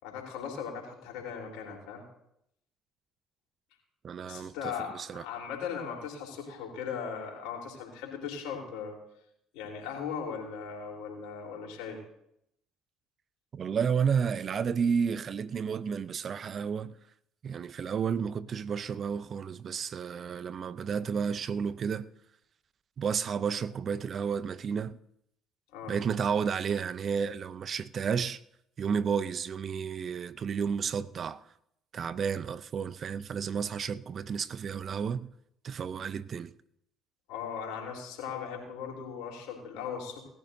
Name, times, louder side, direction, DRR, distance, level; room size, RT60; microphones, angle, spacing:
voice 1, 0.0-2.0 4.2-9.0 9.5-12.0 25.7-25.9 37.3-40.2, left 7 dB, 75° left, 3.7 m, -38 dB
voice 2, 4.0-5.2 13.5-16.9 17.4-22.1 23.0-25.0 25.9-28.4 28.8-31.4 31.9-35.3 35.6-36.5, right 6 dB, 50° right, 0.5 m, -31 dB
19.5 x 14.0 x 2.7 m
hypercardioid pair, 60°, 0 cm